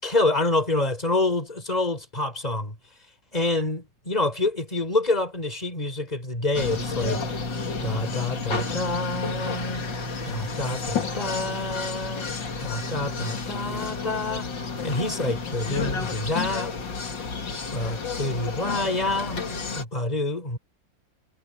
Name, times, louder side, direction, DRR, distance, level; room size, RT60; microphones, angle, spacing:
voice 1, 0.0-2.7 3.3-7.2 7.8-9.8 10.3-12.3 12.6-14.5 14.8-16.7 17.7-20.6, left 2 dB, 20° left, 5.6 m, -27 dB
sound 1, 6.5-19.8, left 4 dB, 75° left, 3.2 m, -31 dB
omnidirectional pair, 2.0 m